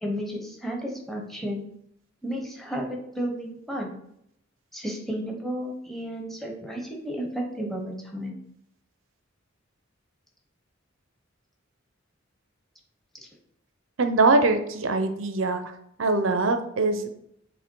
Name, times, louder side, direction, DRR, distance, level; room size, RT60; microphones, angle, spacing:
voice 1, 0.0-1.6 2.2-4.0 4.7-8.3, equal, ahead, 0 dB, 1.2 m, -32 dB
voice 2, 14.0-15.6 16.0-17.1, right 3 dB, 90° right, 7 dB, 0.8 m, -22 dB
7.3 x 3.3 x 4.7 m, 0.74 s
head